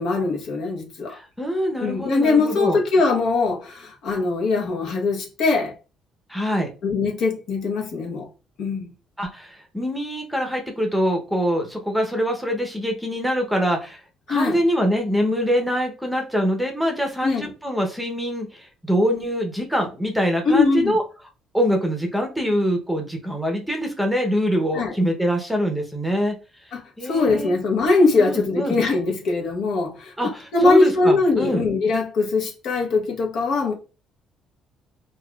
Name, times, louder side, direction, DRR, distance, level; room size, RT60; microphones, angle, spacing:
voice 1, 0.0-1.2 1.8-5.7 6.8-8.3 8.6-8.9 14.3-14.6 17.2-17.5 20.4-21.0 24.7-24.9 26.7-30.1 30.5-33.7, left 3 dB, 70° left, 0.9 m, -21 dB
voice 2, 1.1-2.8 6.3-6.7 9.2-14.0 14.3-21.0 21.5-26.3 27.0-27.5 28.2-28.8 30.2-31.6, equal, ahead, 0.7 m, -24 dB
4.0 x 2.3 x 2.3 m
cardioid pair, 130°, 0 cm